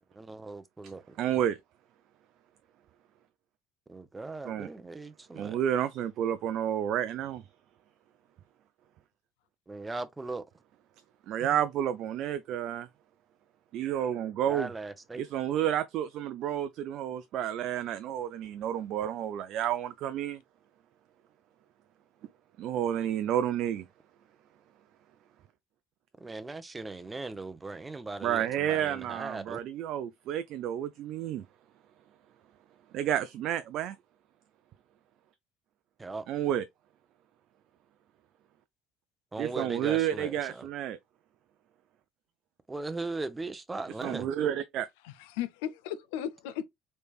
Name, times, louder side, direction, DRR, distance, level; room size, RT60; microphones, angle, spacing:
voice 1, 0.2-1.0 3.9-5.6 9.7-10.4 14.4-15.2 26.2-29.6 36.0-36.2 39.3-40.7 42.7-44.3, right 3 dB, 20° right, 0.7 m, -38 dB
voice 2, 1.2-1.6 4.4-4.7 5.3-7.4 11.3-12.9 13.7-14.7 15.2-20.4 22.6-23.8 28.2-31.4 32.9-34.0 36.3-36.7 39.4-41.0 44.0-44.9, right 10 dB, 60° right, 0.3 m, -30 dB
voice 3, 45.0-46.6, left 10 dB, 70° left, 0.4 m, -36 dB
3.3 x 3.2 x 2.4 m
hypercardioid pair, 60°, 0 cm